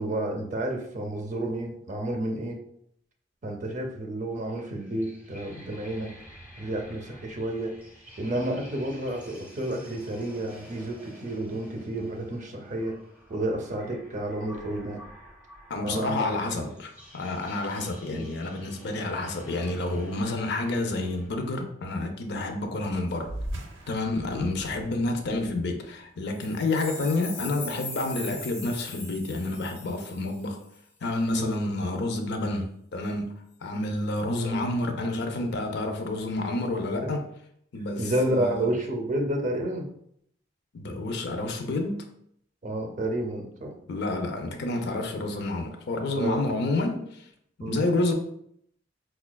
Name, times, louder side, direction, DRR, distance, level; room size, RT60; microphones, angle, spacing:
voice 1, 0.0-2.6 3.4-6.1 6.6-7.7 8.2-13.0 13.3-15.0 15.8-16.4 18.1-18.3 31.3-31.5 34.4-34.6 37.0-37.1 38.0-39.9 42.6-43.7 46.1-46.4 47.6-47.8, right 1 dB, 40° right, 3 dB, 0.5 m, -30 dB
sound 1, 4.4-21.3, equal, 10° right, 0.8 m, -49 dB
voice 2, 15.7-23.3 23.9-30.6 31.0-33.3 33.6-37.2 37.7-38.7 40.7-42.1 43.9-47.2 47.7-48.1, left 2 dB, 60° left, 4 dB, 0.5 m, -29 dB
sound 2, 23.2-28.1, right 1 dB, 85° right, 0.6 m, -41 dB
sound 3, 26.3-30.8, left 3 dB, 90° left, 1.1 m, -40 dB
4.9 x 2.3 x 2.2 m, 0.71 s
head